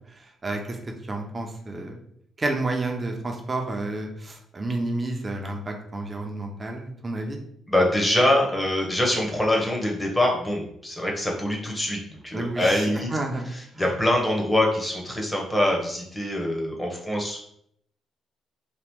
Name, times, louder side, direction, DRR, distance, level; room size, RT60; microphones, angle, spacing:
voice 1, 0.1-2.0 2.4-7.4 12.3-13.5 13.7-13.9, right 2 dB, 30° right, 2 dB, 0.7 m, -30 dB
voice 2, 7.7-13.1 13.5-17.4, left 1 dB, 10° left, -1 dB, 1.0 m, -24 dB
3.0 x 2.3 x 3.5 m, 0.70 s
cardioid pair, 90°, 0 cm